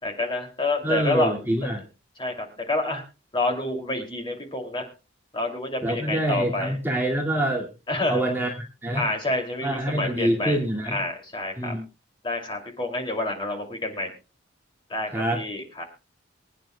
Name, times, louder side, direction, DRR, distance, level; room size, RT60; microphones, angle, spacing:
voice 1, 0.0-1.7 2.2-3.0 3.3-4.9 5.3-6.8 7.9-8.2 8.9-10.6 10.9-11.7 12.2-14.1 14.9-15.8, left 2 dB, 25° left, 3 dB, 2.7 m, -28 dB
voice 2, 0.8-1.8 5.8-7.7 8.1-8.5 8.8-9.1 9.6-11.0 11.6-11.8 15.1-15.4, right 1 dB, 10° right, -2 dB, 2.2 m, -25 dB
25.0 x 9.3 x 2.3 m, 0.30 s
head